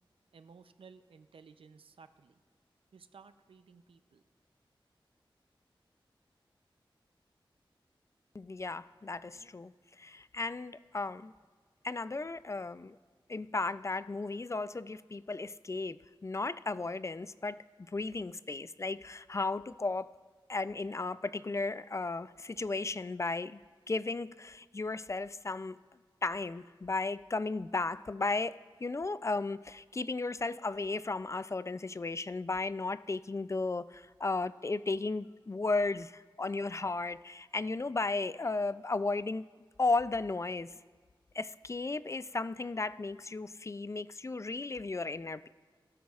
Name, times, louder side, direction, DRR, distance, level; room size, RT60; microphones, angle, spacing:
voice 1, 0.3-2.3 2.9-4.2, right 5 dB, 90° right, 10 dB, 0.5 m, -56 dB
voice 2, 8.3-9.7 10.0-11.3 11.8-13.0 13.3-17.6 17.9-20.1 20.5-23.6 23.9-25.8 26.2-39.4 39.8-40.7 41.3-45.5, left 3 dB, 35° left, 16 dB, 0.3 m, -35 dB
16.5 x 12.5 x 2.4 m, 1.5 s
cardioid pair, 50°, 9 cm